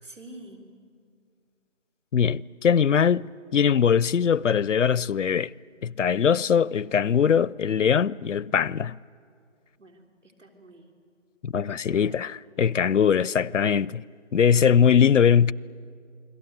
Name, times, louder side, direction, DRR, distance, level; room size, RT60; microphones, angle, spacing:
voice 1, 0.0-0.6 9.8-10.9 11.9-12.3 13.2-13.4, right 1 dB, 80° right, 3.7 m, -47 dB
voice 2, 2.1-5.5 5.8-9.0 11.4-14.0 14.3-15.5, left 7 dB, 80° left, 0.5 m, -21 dB
29.0 x 21.5 x 8.1 m
figure-of-eight pair, 175°, 36 cm